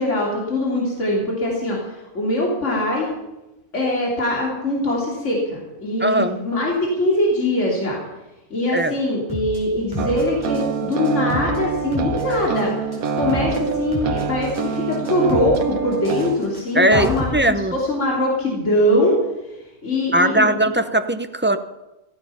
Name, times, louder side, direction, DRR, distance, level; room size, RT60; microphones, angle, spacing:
voice 1, 0.0-3.1 3.7-8.0 8.5-12.9 13.1-19.2 19.8-20.5, left 1 dB, 55° left, -2 dB, 3.4 m, -22 dB
voice 2, 6.0-6.4 8.7-8.9 16.7-17.7 20.1-21.6, right 1 dB, 15° right, 10 dB, 0.4 m, -19 dB
sound 1, 9.3-9.6 9.9-10.7 10.9-11.6 11.9-12.6 12.9-13.6 13.9-14.7 14.9-15.6 15.9-17.3, left 1 dB, 15° left, 5.1 m, -30 dB
sound 2, 10.0-16.4, right 6 dB, 90° right, 1.4 m, -26 dB
15.5 x 15.0 x 5.8 m, 0.98 s
omnidirectional pair, 1.4 m